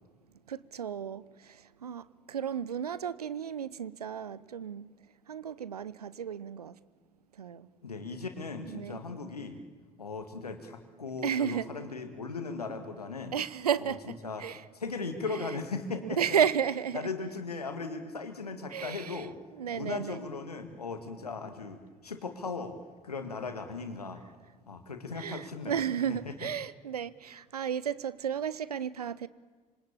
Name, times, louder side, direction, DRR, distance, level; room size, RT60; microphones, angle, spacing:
voice 1, 0.5-4.9 5.3-6.8 7.4-7.7 8.6-9.0 11.2-11.9 13.3-14.6 15.3-15.6 16.0-17.1 18.7-19.3 19.5-20.2 25.2-29.3, right 8 dB, 85° right, 0.8 m, -33 dB
voice 2, 7.8-9.6 10.0-13.3 13.8-13.9 14.2-14.5 14.8-16.2 16.9-19.4 19.7-22.8 23.0-24.2 24.7-25.8 26.1-26.3, left 4 dB, 90° left, 2.1 m, -38 dB
26.5 x 26.0 x 8.7 m
figure-of-eight pair, 50°, 19 cm